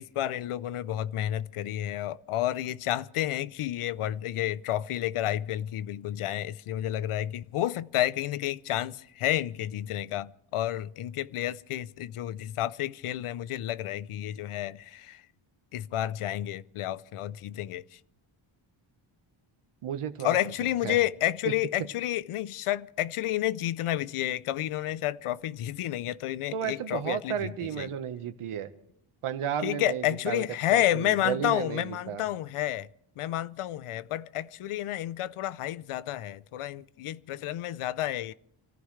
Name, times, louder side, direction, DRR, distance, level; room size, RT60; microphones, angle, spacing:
voice 1, 0.0-15.2 15.7-18.0 20.2-27.9 29.6-32.9 33.2-38.3, left 13 dB, 80° left, 0.7 m, -30 dB
voice 2, 19.8-20.4 20.8-21.0 21.4-21.5 26.5-28.7 29.2-32.2, right 9 dB, 80° right, 1.4 m, -33 dB
27.0 x 14.5 x 3.3 m
wide cardioid pair, 140°, 50 cm